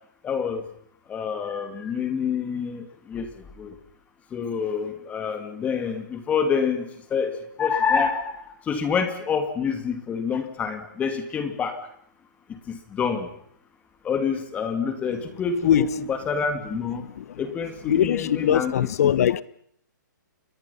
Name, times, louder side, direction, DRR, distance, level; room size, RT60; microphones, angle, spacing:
voice 1, 0.2-0.6 1.1-3.3 3.6-3.7 4.3-7.3 7.6-11.7 12.7-13.3 14.0-17.0 17.4-18.8 19.0-19.1, left 6 dB, 15° left, 2.6 m, -27 dB
voice 2, 17.9-19.4, left 10 dB, 50° left, 1.0 m, -21 dB
29.0 x 24.0 x 5.8 m
hypercardioid pair, 155°, 10 cm